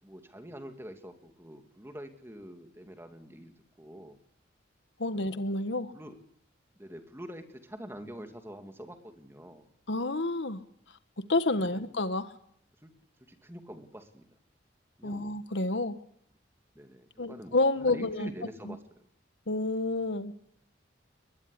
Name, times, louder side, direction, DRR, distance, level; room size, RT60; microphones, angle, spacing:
voice 1, 0.0-3.5 3.8-4.2 5.1-5.4 5.9-6.2 6.8-9.7 11.5-11.8 12.8-12.9 13.3-14.3 15.0-15.4 16.7-18.8, equal, 15° right, 6 dB, 2.4 m, -46 dB
voice 2, 5.0-5.9 9.9-10.6 11.3-12.3 15.0-16.0 17.2-18.3 18.6-18.8 19.5-20.3, left 2 dB, 70° left, 11 dB, 1.5 m, -29 dB
21.0 x 20.5 x 9.9 m, 0.70 s
head